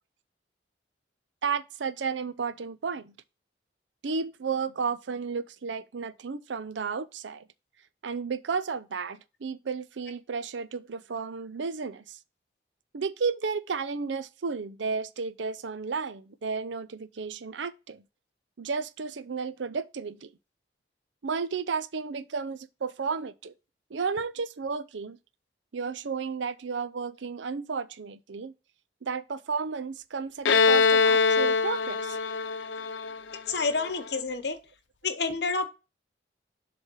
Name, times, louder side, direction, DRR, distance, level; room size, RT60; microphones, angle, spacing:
voice 1, 1.4-3.1 4.0-7.4 8.0-12.2 12.9-18.0 18.6-20.3 21.2-23.5 23.9-25.2 25.7-28.5 29.0-32.2, right 5 dB, 85° right, 0.5 m, -33 dB
Bowed string instrument, 30.5-34.0, left 4 dB, 80° left, 0.5 m, -23 dB
voice 2, 33.5-34.6 35.0-35.7, left 4 dB, 65° left, 0.9 m, -29 dB
7.2 x 3.4 x 5.5 m
head